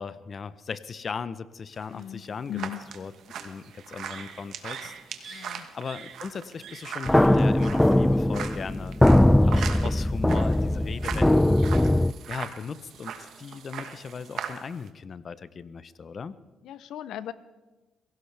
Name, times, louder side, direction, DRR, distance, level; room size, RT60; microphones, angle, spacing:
voice 1, 0.0-11.8 12.3-16.3, left 5 dB, 45° left, 15 dB, 0.7 m, -38 dB
sound 1, 1.7-14.9, right 8 dB, 70° right, 1.4 m, -40 dB
voice 2, 1.9-2.2 2.5-2.8 5.3-5.7 16.6-17.3, left 11 dB, 80° left, 15 dB, 0.7 m, -37 dB
sound 2, 7.1-12.1, left 1 dB, 10° left, 0.4 m, -20 dB
22.5 x 17.0 x 3.4 m, 1.2 s
cardioid pair, 90°, 0 cm